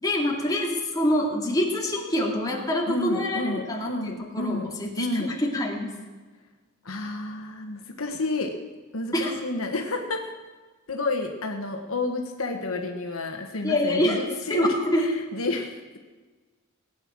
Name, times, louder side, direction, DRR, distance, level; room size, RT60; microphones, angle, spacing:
voice 1, 0.0-6.0 9.1-9.3 13.6-14.2 14.5-15.1, left 1 dB, 20° left, -2 dB, 2.3 m, -26 dB
voice 2, 2.9-5.3 6.8-8.5 8.9-10.3 10.9-16.0, left 2 dB, 70° left, 3 dB, 1.4 m, -30 dB
18.0 x 9.1 x 6.2 m, 1.3 s
head